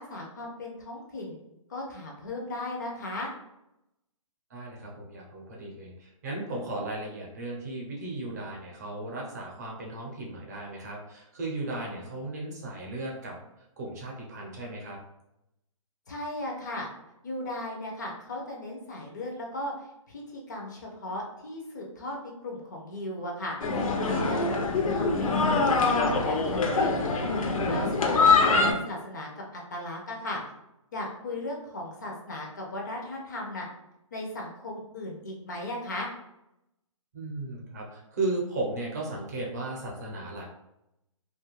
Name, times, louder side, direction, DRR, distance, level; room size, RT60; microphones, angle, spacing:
voice 1, 0.0-1.4 1.7-3.3 16.1-16.9 17.2-27.1 27.6-30.4 30.9-33.7 34.1-36.1, left 1 dB, 35° left, -1 dB, 0.4 m, -37 dB
voice 2, 4.5-13.4 13.8-15.0 28.5-28.6 37.1-40.4, right 2 dB, 30° right, -2 dB, 0.6 m, -35 dB
sound 1, 23.6-28.7, left 4 dB, 90° left, 0.6 m, -24 dB
2.6 x 2.3 x 3.0 m, 0.86 s
hypercardioid pair, 170°, 17 cm